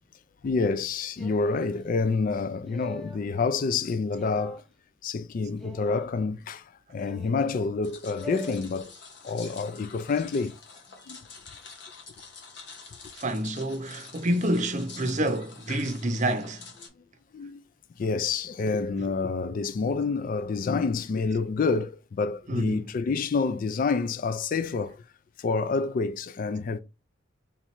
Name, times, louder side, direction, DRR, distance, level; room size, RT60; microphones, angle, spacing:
voice 1, 0.4-4.6 5.0-8.9 9.2-10.6 11.1-11.2 15.7-15.8 17.3-17.6 18.0-25.0 25.4-26.8, left 4 dB, 45° left, 0.3 m, -28 dB
sound 1, 1.2-1.7 2.6-3.3 4.2-4.6 5.6-6.1 7.0-7.5 8.2-8.6, left 2 dB, ahead, 0.6 m, -42 dB
sound 2, 7.8-16.9, left 4 dB, 60° left, 1.3 m, -47 dB
voice 2, 13.2-16.6 22.5-22.8, right 1 dB, 40° right, 0.6 m, -28 dB
3.6 x 3.0 x 4.4 m
head